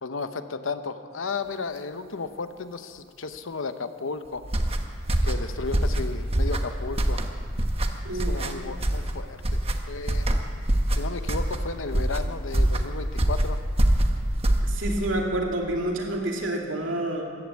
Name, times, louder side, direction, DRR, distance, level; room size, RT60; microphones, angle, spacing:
voice 1, 0.0-4.4 5.2-7.2 8.1-9.6 9.9-10.3 10.9-13.6, left 4 dB, 90° left, 10 dB, 0.9 m, -34 dB
sound 1, 4.4-15.1, right 1 dB, 30° right, 1.0 m, -25 dB
voice 2, 8.0-8.4 14.6-17.2, right 1 dB, 90° right, 0 dB, 2.6 m, -28 dB
14.0 x 11.5 x 8.4 m, 2.4 s
head